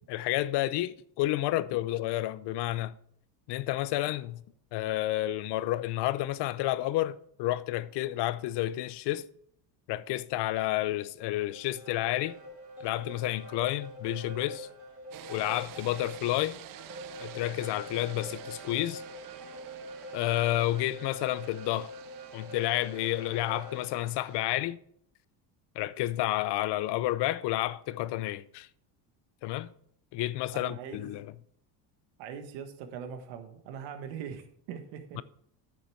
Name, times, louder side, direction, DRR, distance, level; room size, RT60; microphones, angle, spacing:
voice 1, 0.1-3.0 3.5-4.4 4.7-9.3 9.9-12.4 12.8-14.7 15.3-16.6 17.2-19.0 20.1-21.9 22.3-24.8 25.8-28.7 29.4-29.7 30.1-31.3, left 15 dB, 60° left, 0.6 m, -30 dB
sound 1, 11.4-24.0, equal, 30° right, 4.1 m, -45 dB
sound 2, 15.1-24.4, right 11 dB, 45° right, 0.7 m, -50 dB
voice 2, 30.5-31.1 32.2-35.2, right 7 dB, 80° right, 1.5 m, -41 dB
10.0 x 6.6 x 4.6 m
supercardioid pair, 100°, 46 cm